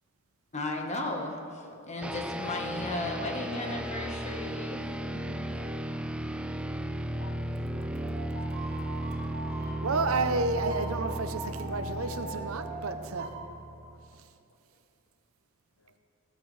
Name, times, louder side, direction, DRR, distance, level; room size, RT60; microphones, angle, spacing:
voice 1, 0.5-5.4, left 2 dB, 35° left, 2 dB, 1.3 m, -35 dB
voice 2, 1.7-2.1 6.9-7.4 7.7-8.1 8.9-9.7 11.8-11.9 12.6-13.0 13.4-14.0 15.8-16.0, left 3 dB, 85° left, 7 dB, 0.9 m, -56 dB
sound 1, 2.0-14.2, right 1 dB, 5° right, 0.3 m, -35 dB
sound 2, 7.4-13.3, right 2 dB, 50° right, 3.2 m, -41 dB
voice 3, 9.8-13.3, right 3 dB, 90° right, 9 dB, 0.7 m, -30 dB
15.5 x 13.0 x 3.3 m, 2.6 s
head